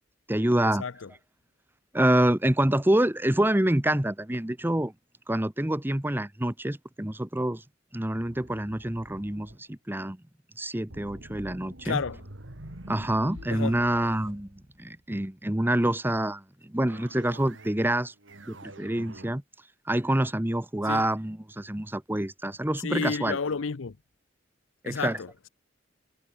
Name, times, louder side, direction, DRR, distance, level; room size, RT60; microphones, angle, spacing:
voice 1, 0.3-0.8 1.9-4.9 5.3-7.6 7.9-10.2 10.6-12.0 12.9-18.1 18.5-19.4 19.9-23.4 24.8-25.2, right 1 dB, 10° right, 1.0 m, -27 dB
voice 2, 0.8-1.1 11.8-12.2 13.5-13.8 20.9-21.0 22.8-24.0 24.9-25.5, left 5 dB, 85° left, 0.7 m, -31 dB
sound 1, 8.2-9.6 10.9-15.1 16.9-17.8 18.2-19.3, right 1 dB, 70° right, 2.9 m, -47 dB
head